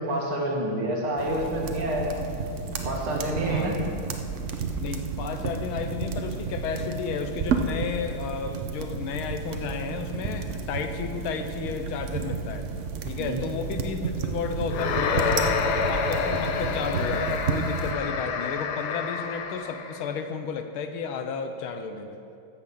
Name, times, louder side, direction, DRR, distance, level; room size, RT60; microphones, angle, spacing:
voice 1, 0.0-2.1 2.8-3.7 13.2-13.4, right 1 dB, 85° right, -2 dB, 2.7 m, -28 dB
sound 1, 1.2-17.9, right 5 dB, 65° right, 0.7 m, -32 dB
voice 2, 4.8-12.7 13.0-22.2, left 6 dB, 90° left, 7 dB, 1.7 m, -32 dB
sound 2, 14.7-20.1, left 5 dB, 65° left, 1.2 m, -28 dB
14.5 x 5.9 x 6.8 m, 2.6 s
omnidirectional pair, 2.3 m